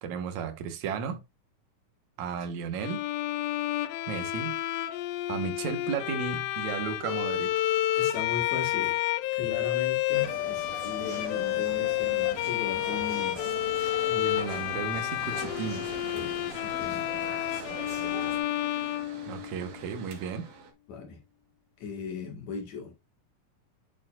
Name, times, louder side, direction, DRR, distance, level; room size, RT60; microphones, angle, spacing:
voice 1, 0.0-1.2 2.2-3.0 4.1-4.6 5.3-7.6 14.1-15.9 19.3-20.4, right 7 dB, 60° right, 2.3 m, -34 dB
Bowed string instrument, 2.8-19.8, left 15 dB, 85° left, 2.5 m, -30 dB
voice 2, 8.0-9.0 9.3-13.4 16.1-17.0 20.9-21.2 21.8-22.9, left 6 dB, 55° left, 2.8 m, -38 dB
sound 1, 10.1-18.4, right 2 dB, 30° right, 1.8 m, -42 dB
Mechanical fan, 15.2-20.7, right 4 dB, 80° right, 3.7 m, -47 dB
8.9 x 6.9 x 2.5 m
omnidirectional pair, 4.3 m